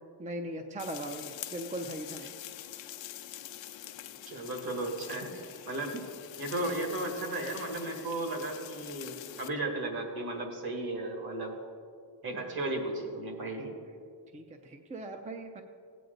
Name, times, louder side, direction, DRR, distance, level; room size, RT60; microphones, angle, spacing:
voice 1, 0.2-2.3 14.3-15.6, right 1 dB, 20° right, 5 dB, 0.5 m, -39 dB
sound 1, 0.8-9.5, left 12 dB, 85° left, 0.7 m, -45 dB
voice 2, 4.3-5.9 6.4-11.5 12.2-13.7, right 2 dB, 55° right, 2 dB, 2.1 m, -35 dB
16.5 x 9.2 x 4.0 m, 2.2 s
wide cardioid pair, 165°, 43 cm